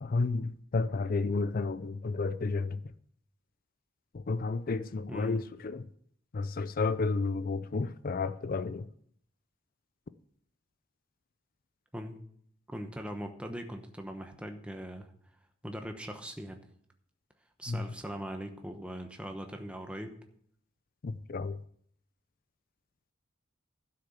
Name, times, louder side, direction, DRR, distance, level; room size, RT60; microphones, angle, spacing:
voice 1, 0.0-2.8 4.1-5.8 6.3-8.9 17.7-17.8 21.0-21.6, left 3 dB, 45° left, 0.4 m, -31 dB
voice 2, 5.1-5.4 11.9-12.2 12.7-15.1 15.6-16.6 17.6-20.2, equal, 5° right, 0.9 m, -40 dB
12.0 x 6.6 x 7.2 m
head